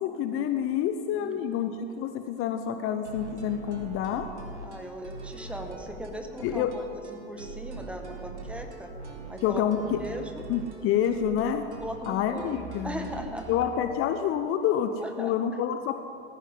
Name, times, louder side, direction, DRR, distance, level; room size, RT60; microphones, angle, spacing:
voice 1, 0.0-1.7 2.0-4.3 6.4-6.7 9.4-10.0 10.5-11.7 12.1-13.0 13.5-15.9, left 9 dB, 40° left, 8 dB, 0.9 m, -28 dB
voice 2, 1.2-1.6 4.6-8.9 9.3-9.7 10.0-10.4 11.8-12.5 12.8-13.7 15.0-15.3, equal, 5° right, 4 dB, 1.6 m, -39 dB
sound 1, 3.0-13.7, right 3 dB, 85° right, 2.2 m, -42 dB
18.0 x 14.5 x 3.9 m, 2.5 s
hypercardioid pair, 85°, 34 cm